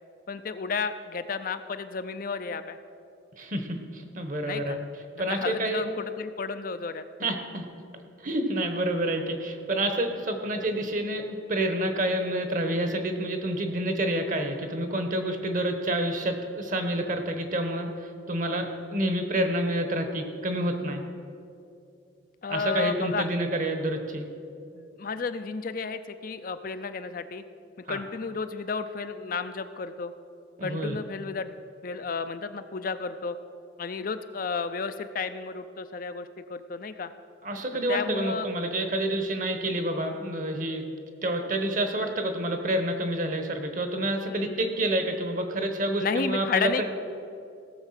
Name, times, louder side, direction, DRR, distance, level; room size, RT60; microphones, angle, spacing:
voice 1, 0.3-2.8 4.4-4.8 5.3-7.3 22.4-23.3 24.7-27.4 27.9-30.1 30.6-31.5 31.8-33.4 33.8-37.1 37.9-38.5 44.3-44.8 46.0-46.8, left 5 dB, 45° left, 10 dB, 0.4 m, -32 dB
voice 2, 3.4-4.8 5.2-5.8 7.2-7.6 8.2-21.0 22.5-24.2 27.9-28.0 30.6-31.0 37.4-40.8 41.2-46.8, right 1 dB, 40° right, 6 dB, 1.1 m, -28 dB
17.0 x 7.1 x 5.8 m, 2.6 s
head